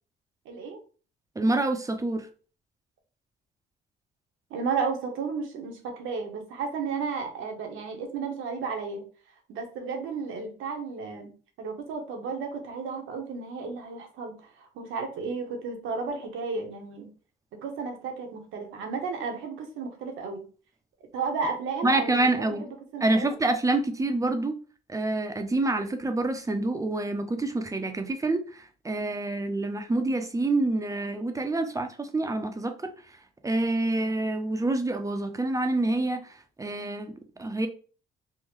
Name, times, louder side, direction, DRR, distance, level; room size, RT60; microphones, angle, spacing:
voice 1, 0.4-0.8 4.5-9.0 9.5-11.3 11.6-17.1 17.6-20.4 21.1-23.3, right 5 dB, 85° right, 0.9 m, -33 dB
voice 2, 1.4-2.3 21.8-22.6 23.0-24.5 24.9-32.9 33.4-37.7, right 2 dB, 15° right, 0.5 m, -27 dB
3.6 x 2.1 x 3.1 m
cardioid pair, 90°, 20 cm